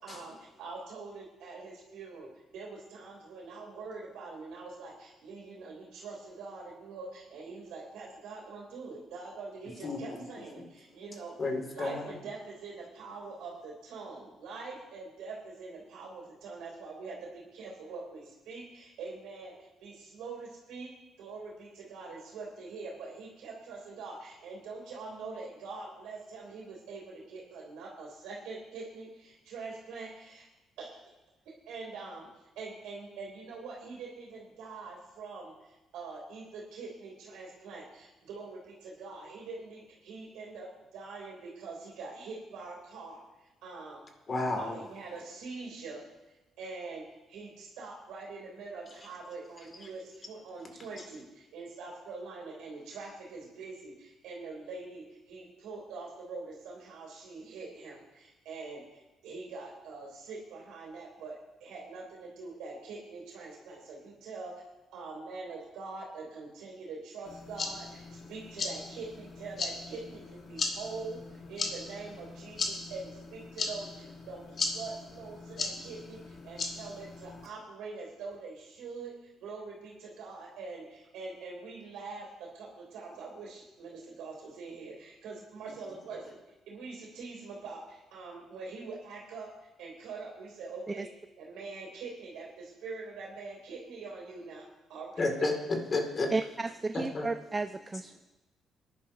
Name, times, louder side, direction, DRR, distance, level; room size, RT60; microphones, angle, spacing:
voice 1, 0.0-11.4 11.7-20.9 21.2-30.5 30.8-31.0 31.4-32.3 32.5-44.0 44.4-46.0 46.6-64.5 64.9-86.4 86.7-91.1 91.4-95.2 96.9-97.0, right 4 dB, 90° right, -3 dB, 3.0 m, -44 dB
voice 2, 11.4-12.2 44.3-44.8 95.2-96.3 96.9-97.3, left 2 dB, 40° left, 3 dB, 2.3 m, -31 dB
sound 1, 67.3-77.5, left 4 dB, 55° left, 1.6 m, -38 dB
voice 3, 96.3-98.2, right 3 dB, 25° right, 10 dB, 0.3 m, -33 dB
20.0 x 10.5 x 2.8 m, 1.1 s
cardioid pair, 90°, 0 cm